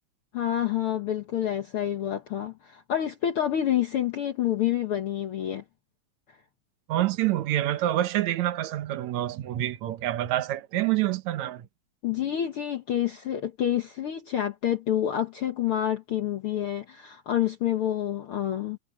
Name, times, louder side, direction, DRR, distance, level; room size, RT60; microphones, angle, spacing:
voice 1, 0.3-5.6 12.0-18.8, left 11 dB, 55° left, 1.7 m, -28 dB
voice 2, 6.9-11.7, right 14 dB, 70° right, 2.3 m, -27 dB
omnidirectional pair, 3.5 m